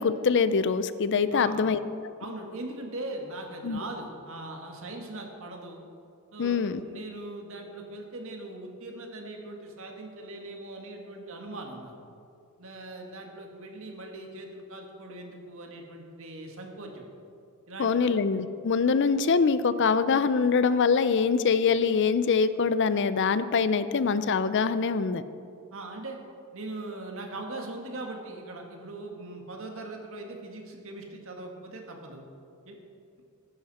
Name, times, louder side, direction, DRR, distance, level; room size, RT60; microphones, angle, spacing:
voice 1, 0.0-2.1 3.6-3.8 6.4-6.8 17.8-25.2, left 5 dB, 55° left, 13 dB, 0.5 m, -24 dB
voice 2, 1.3-1.7 2.2-5.8 6.3-11.9 12.6-17.0 17.7-18.2 18.9-19.0 25.7-26.2 26.5-32.2 32.7-32.8, right 2 dB, 65° right, 2 dB, 1.8 m, -40 dB
15.0 x 11.5 x 4.2 m, 2.5 s
head